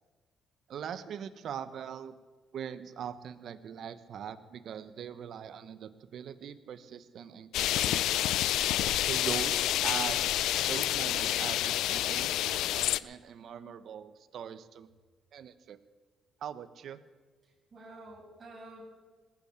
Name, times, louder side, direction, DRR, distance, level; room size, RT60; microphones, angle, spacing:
voice 1, 0.7-2.2 2.5-8.3 9.1-10.3 10.7-14.9 15.3-15.8 16.4-17.0, right 8 dB, 65° right, 13 dB, 1.0 m, -41 dB
sound 1, 7.5-13.0, left 13 dB, 85° left, 0.4 m, -28 dB
voice 2, 17.4-18.8, right 2 dB, 35° right, -4 dB, 6.5 m, -50 dB
20.0 x 8.8 x 8.3 m, 1.4 s
cardioid pair, 90°, 0 cm